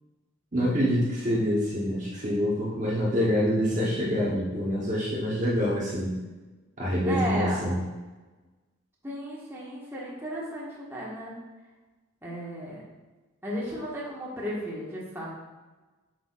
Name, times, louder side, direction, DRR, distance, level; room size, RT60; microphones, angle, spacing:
voice 1, 0.5-6.1 6.8-7.7, equal, 35° right, -6 dB, 1.2 m, -26 dB
voice 2, 7.0-7.6 9.0-11.3 12.2-12.8 13.4-15.2, equal, 10° right, -6 dB, 1.6 m, -34 dB
8.0 x 6.3 x 2.5 m, 1.2 s
head